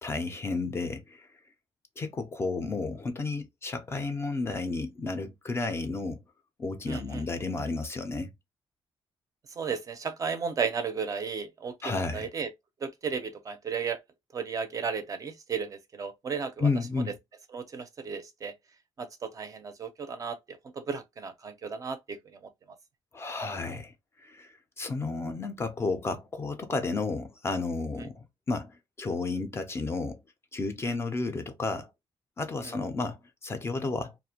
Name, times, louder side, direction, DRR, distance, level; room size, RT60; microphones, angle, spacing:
voice 1, 0.0-1.3 2.0-6.2 6.6-8.3 11.8-12.3 16.6-17.1 23.1-23.9 24.2-30.2 30.5-31.9 32.4-34.1, left 3 dB, 25° left, 0.4 m, -32 dB
voice 2, 6.9-7.3 9.6-12.5 12.8-14.0 14.3-16.7 17.5-18.5 19.0-22.4 28.0-28.1 30.8-30.9 32.6-32.7, right 6 dB, 35° right, 0.4 m, -34 dB
2.4 x 2.1 x 2.7 m
wide cardioid pair, 160°, 10 cm